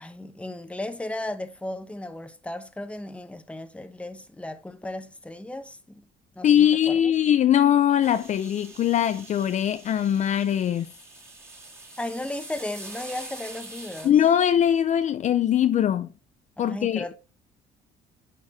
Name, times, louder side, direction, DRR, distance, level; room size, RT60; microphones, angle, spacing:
voice 1, 0.0-6.0 6.4-7.1 12.0-14.2 16.6-17.2, left 1 dB, 5° left, 1.0 m, -35 dB
voice 2, 6.4-10.9 14.0-16.1 16.6-17.1, left 10 dB, 45° left, 0.5 m, -21 dB
sound 1, 8.0-14.1, right 2 dB, 15° right, 2.3 m, -44 dB
11.0 x 4.6 x 3.3 m
cardioid pair, 110°, 17 cm